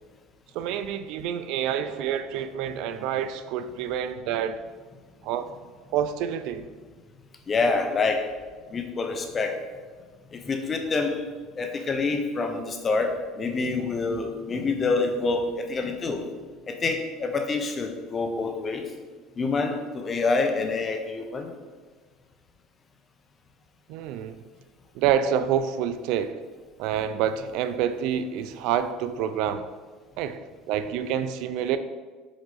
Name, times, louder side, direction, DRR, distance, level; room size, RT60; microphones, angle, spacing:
voice 1, 0.5-4.6 5.2-5.5 5.9-6.7 23.9-24.4 25.0-26.4 26.8-29.7 30.2-30.4 30.7-31.8, right 9 dB, 70° right, 11 dB, 0.3 m, -27 dB
voice 2, 7.5-8.3 8.7-9.6 10.3-11.3 11.5-16.3 16.7-18.9 19.4-21.5, left 3 dB, 25° left, 5 dB, 0.7 m, -27 dB
5.1 x 4.8 x 3.9 m, 1.4 s
cardioid pair, 130°, 0 cm